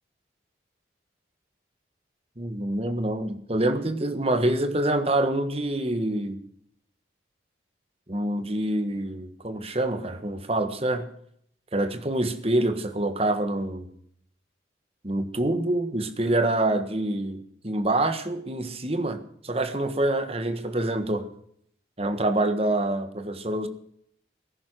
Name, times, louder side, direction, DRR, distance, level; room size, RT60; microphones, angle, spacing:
voice 1, 2.4-6.4 8.1-11.1 11.7-13.9 15.0-21.3 22.0-23.7, right 1 dB, 30° right, 1.5 m, -26 dB
19.0 x 11.0 x 6.5 m
head